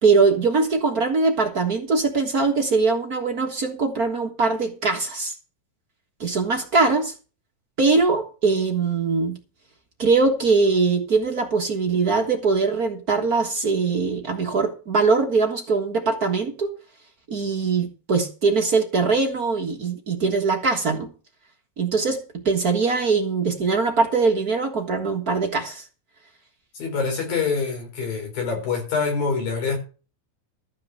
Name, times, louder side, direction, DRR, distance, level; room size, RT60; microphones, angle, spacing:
voice 1, 0.0-5.3 6.2-7.1 7.8-9.3 10.0-16.7 17.3-21.1 21.8-22.2 22.4-25.8, right 4 dB, 45° right, 1.2 m, -22 dB
voice 2, 26.8-29.8, left 5 dB, 85° left, 6.1 m, -25 dB
13.5 x 5.8 x 7.8 m
omnidirectional pair, 4.0 m